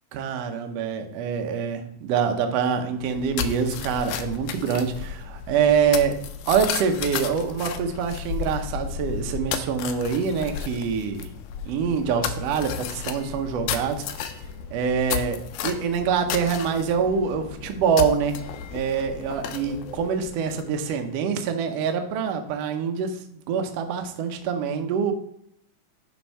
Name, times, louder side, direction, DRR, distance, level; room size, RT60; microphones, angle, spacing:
voice 1, 0.1-6.1 6.5-11.3 11.6-14.4 14.7-18.4 18.7-25.1, right 6 dB, 90° right, 5 dB, 1.4 m, -25 dB
sound 1, 3.0-20.9, left 8 dB, 85° left, 1.6 m, -33 dB
10.5 x 3.6 x 4.2 m, 0.74 s
omnidirectional pair, 4.0 m